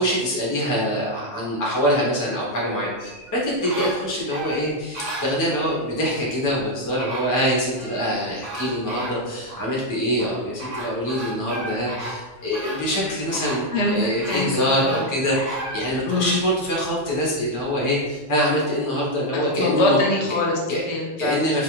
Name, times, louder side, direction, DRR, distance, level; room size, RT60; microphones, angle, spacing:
voice 1, 0.0-20.0 20.7-20.8 21.2-21.6, equal, 25° left, -5 dB, 0.5 m, -24 dB
sound 1, 3.0-5.8 6.6-6.7 7.0-8.1 8.4-9.6 10.2-16.4 16.9-17.0, right 2 dB, 85° right, 1.1 m, -34 dB
voice 2, 13.7-14.5 14.8-15.0 16.1-16.3 19.3-21.4, left 2 dB, 70° left, -1 dB, 0.8 m, -23 dB
2.3 x 2.3 x 2.9 m, 1.2 s
omnidirectional pair, 1.2 m